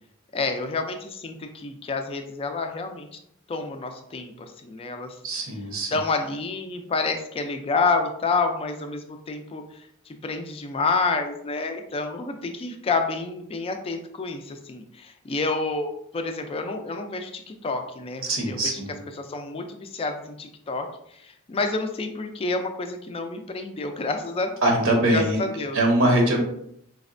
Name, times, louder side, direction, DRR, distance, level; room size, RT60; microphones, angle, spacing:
voice 1, 0.3-3.1 3.5-5.2 5.9-18.8 19.2-20.9 21.1-24.5 25.1-25.8, left 3 dB, 25° left, 6 dB, 0.3 m, -29 dB
voice 2, 5.2-6.0 18.2-19.0 24.6-25.4 25.7-26.4, right 1 dB, 65° right, 1 dB, 0.7 m, -22 dB
4.0 x 2.1 x 2.5 m, 0.73 s
head